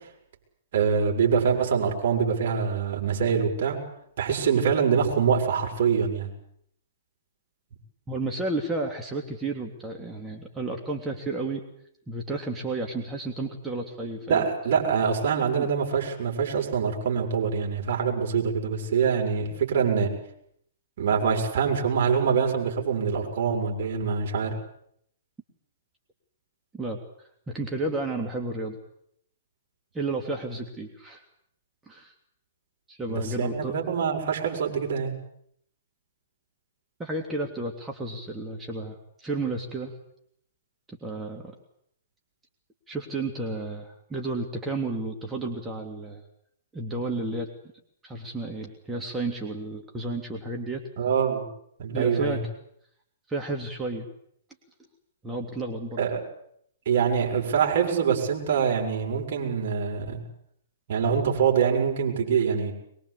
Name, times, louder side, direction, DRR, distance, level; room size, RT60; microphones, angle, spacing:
voice 1, 0.7-3.8 4.2-6.3 14.3-20.1 21.0-24.6 33.1-35.1 51.0-51.5 51.8-52.4 56.0-56.2 56.8-60.2 60.9-62.7, right 6 dB, 55° right, 0 dB, 6.7 m, -24 dB
voice 2, 8.1-11.6 12.1-14.5 15.6-15.7 26.7-27.0 27.5-28.8 29.9-31.2 31.9-32.1 32.9-33.7 37.0-39.9 40.9-41.5 42.9-46.2 46.7-47.5 48.0-50.9 51.9-52.4 53.3-54.1 55.2-56.0, right 2 dB, 10° right, 1 dB, 3.2 m, -32 dB
22.5 x 22.5 x 8.5 m, 0.70 s
figure-of-eight pair, 115°, 0 cm